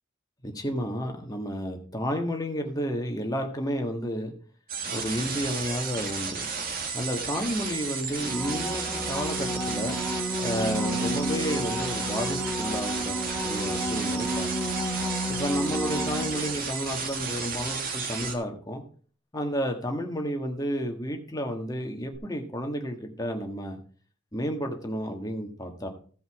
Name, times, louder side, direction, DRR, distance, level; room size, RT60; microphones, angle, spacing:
voice 1, 0.4-4.3 4.9-6.5 6.9-10.0 10.4-13.2 13.4-14.7 15.3-18.8 19.3-23.8 24.3-25.9, equal, 20° left, 3 dB, 1.5 m, -31 dB
sound 1, 4.7-18.4, right 5 dB, 45° right, 1.7 m, -33 dB
sound 2, 8.2-16.8 22.1-22.2, equal, ahead, 1.3 m, -31 dB
15.5 x 5.4 x 4.8 m, 0.43 s
head